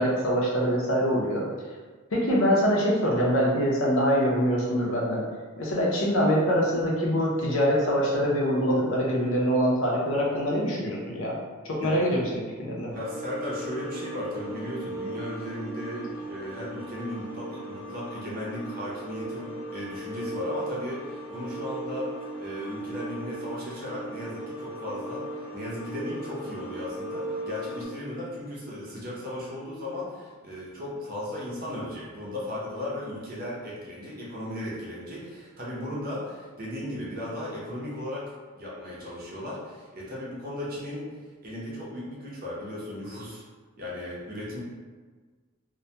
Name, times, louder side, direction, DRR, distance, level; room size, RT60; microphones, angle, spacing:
voice 1, 0.0-1.4 2.1-5.2 5.6-11.4 11.7-12.9, equal, 65° left, -3 dB, 0.5 m, -24 dB
sound 1, 12.9-27.9, right 1 dB, 5° left, 0.9 m, -37 dB
voice 2, 12.9-38.2 38.5-41.1 41.4-43.4 43.8-44.6, left 1 dB, 40° right, -6 dB, 0.6 m, -36 dB
2.1 x 2.1 x 2.7 m, 1.4 s
head